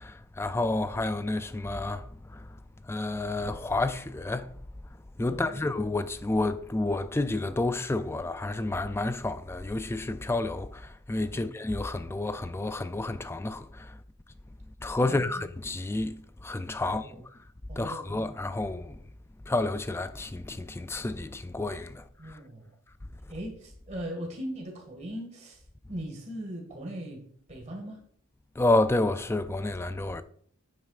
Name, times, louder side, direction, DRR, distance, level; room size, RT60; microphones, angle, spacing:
voice 1, 0.0-2.5 2.9-4.5 5.2-14.0 14.8-17.1 17.8-19.0 19.5-22.4 28.6-30.2, left 2 dB, 10° left, 0.3 m, -30 dB
voice 2, 5.2-5.6 11.3-11.5 15.0-15.4 16.8-17.2 17.7-18.2 22.2-22.7 23.3-25.6 25.9-28.0, equal, 35° right, 1.8 m, -39 dB
9.0 x 7.6 x 2.4 m
head